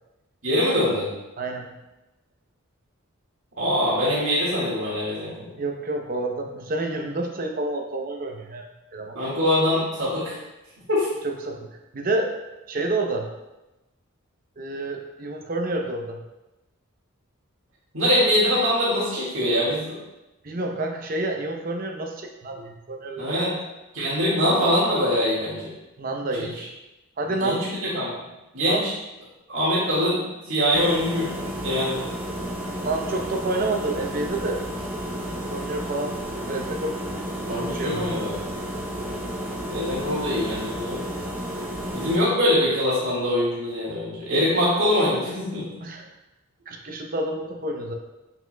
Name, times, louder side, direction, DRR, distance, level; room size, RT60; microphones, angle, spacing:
voice 1, 0.4-1.1 3.6-5.5 9.2-10.4 10.9-11.1 17.9-20.0 20.5-20.6 23.2-23.5 23.9-25.7 26.4-26.5 27.4-28.1 28.5-28.9 29.5-30.2 30.5-32.0 37.5-38.4 39.7-41.0 41.9-45.7, left 1 dB, 65° right, -7 dB, 1.8 m, -23 dB
voice 2, 1.4-1.7 5.6-9.2 11.2-11.7 11.9-12.3 12.7-13.3 14.6-16.2 20.4-23.5 26.0-26.6 27.2-27.6 28.6-28.9 32.8-34.6 35.5-36.2 36.5-37.3 37.6-38.1 45.8-46.1 46.7-47.9, right 2 dB, 40° right, 2 dB, 0.7 m, -29 dB
sound 1, 30.7-42.2, equal, 10° right, 0.7 m, -32 dB
7.4 x 5.7 x 2.2 m, 1.0 s
head